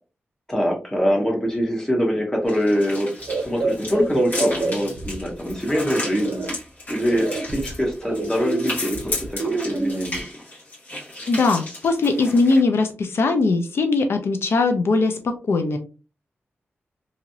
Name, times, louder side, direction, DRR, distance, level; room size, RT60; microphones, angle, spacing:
voice 1, 0.5-6.4 6.9-10.2, equal, 10° left, -1 dB, 0.9 m, -24 dB
sound 1, 2.5-12.6, left 2 dB, 50° left, 1.5 m, -34 dB
sound 2, 3.2-5.5 6.0-6.5 7.1-10.2, right 3 dB, 70° right, 0.5 m, -27 dB
voice 2, 11.3-15.8, left 3 dB, 70° left, 6 dB, 0.4 m, -20 dB
2.9 x 2.7 x 2.6 m, 0.34 s
wide cardioid pair, 165°, 4 cm